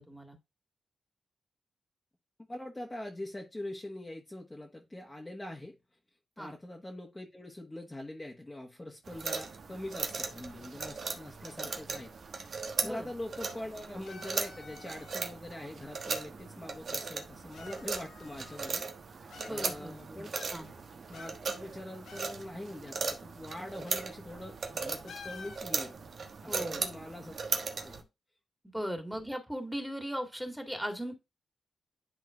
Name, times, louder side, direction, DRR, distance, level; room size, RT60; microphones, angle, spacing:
voice 1, 0.1-0.4 6.4-6.5 12.8-13.1 19.4-20.7 26.5-26.8 28.6-31.2, equal, 5° right, 5 dB, 2.0 m, -38 dB
voice 2, 2.5-5.8 6.4-12.2 12.4-18.8 19.2-20.3 21.0-27.3 27.8-28.1 28.7-28.8, left 1 dB, 20° left, 0 dB, 1.4 m, -43 dB
sound 1, 9.1-28.0, right 4 dB, 60° right, 1.1 m, -38 dB
sound 2, 14.0-15.4 16.4-16.5 17.5-18.8 19.3-19.9 20.3-20.8 21.1-22.3 22.6-22.7 23.8-24.1 24.4-24.6 25.1-25.7, left 5 dB, 80° left, 1.4 m, -50 dB
11.0 x 3.8 x 2.5 m, 0.24 s
cardioid pair, 55°, 0 cm